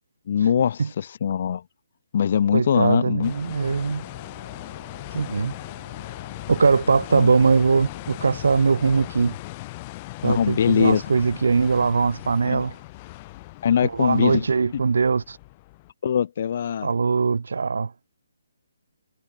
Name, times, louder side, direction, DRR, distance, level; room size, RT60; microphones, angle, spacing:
voice 1, 0.3-1.6 2.1-3.3 5.9-6.0 7.1-7.3 10.2-11.0 12.4-12.6 13.6-14.4 16.0-16.9, left 8 dB, 35° left, 1.4 m, -22 dB
Wind instrument woodwind instrument, 2.4-9.1, right 4 dB, 85° right, 7.5 m, -49 dB
voice 2, 2.5-4.0 5.1-5.5 6.5-9.4 10.2-12.7 13.8-15.4 16.8-17.9, right 5 dB, 65° right, 0.5 m, -21 dB
sound 1, 3.2-15.9, left 21 dB, 20° left, 2.4 m, -39 dB
hypercardioid pair, 175°, 0 cm